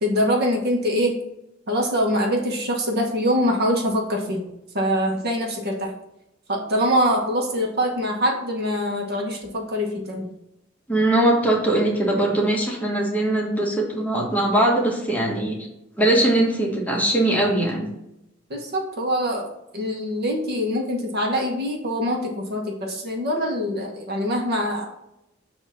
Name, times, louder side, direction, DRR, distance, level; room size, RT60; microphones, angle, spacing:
voice 1, 0.0-1.2 1.7-4.4 4.7-5.9 6.5-10.3 18.5-24.9, equal, 55° right, 1 dB, 1.3 m, -24 dB
voice 2, 10.9-15.6 16.0-17.9, right 1 dB, 10° left, -2 dB, 1.3 m, -21 dB
7.0 x 2.9 x 5.8 m, 0.85 s
head